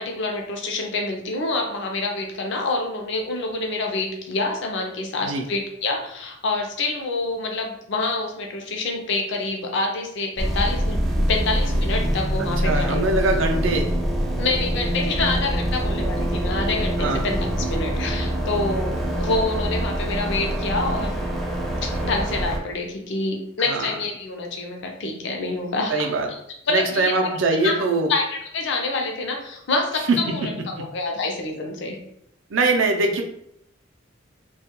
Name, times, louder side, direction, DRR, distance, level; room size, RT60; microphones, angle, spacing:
voice 1, 0.0-11.0 11.3-13.0 14.4-21.2 21.8-26.4 26.7-27.1 27.6-27.8 28.1-32.0, left 3 dB, 65° left, 2 dB, 0.5 m, -27 dB
sound 1, 10.4-22.6, equal, ahead, 0.5 m, -25 dB
voice 2, 12.6-13.9 17.0-17.3 23.7-23.9 25.9-26.3 26.7-28.1 30.1-30.3 30.8-30.9 32.5-33.2, right 3 dB, 70° right, 3 dB, 0.5 m, -22 dB
2.3 x 2.2 x 2.9 m, 0.72 s
head